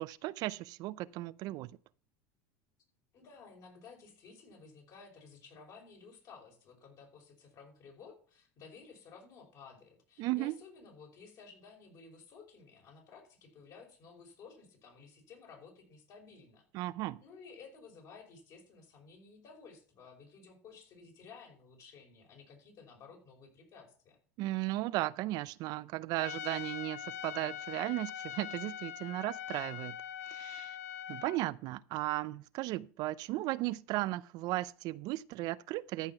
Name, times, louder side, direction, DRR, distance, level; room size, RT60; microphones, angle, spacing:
voice 1, 0.0-1.7 10.2-10.6 16.7-17.2 24.4-30.0 30.3-30.8 31.1-36.1, right 18 dB, 55° right, 0.5 m, -36 dB
voice 2, 3.1-16.6 17.2-24.2, left 5 dB, 50° left, 5.4 m, -55 dB
Trumpet, 26.2-31.4, left 10 dB, 90° left, 0.7 m, -43 dB
13.5 x 5.8 x 5.8 m
supercardioid pair, 100°, 8 cm